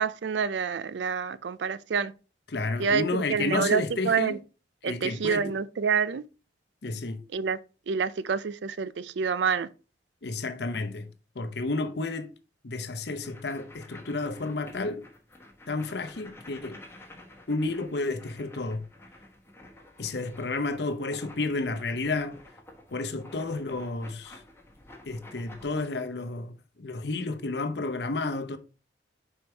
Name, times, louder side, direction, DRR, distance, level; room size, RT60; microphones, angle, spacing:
voice 1, 0.0-2.1 2.8-4.4 4.8-6.3 7.3-7.6 7.9-9.7, right 6 dB, 75° right, 0.4 m, -27 dB
voice 2, 2.5-4.4 4.8-5.6 6.8-7.2 10.2-11.1 11.3-12.3 12.6-15.1 15.7-16.8 17.5-18.9 20.0-22.4 22.9-24.4 25.0-28.6, left 3 dB, 65° left, 0.8 m, -31 dB
sound 1, 13.2-25.8, left 1 dB, 15° left, 1.2 m, -51 dB
5.2 x 4.5 x 4.5 m
head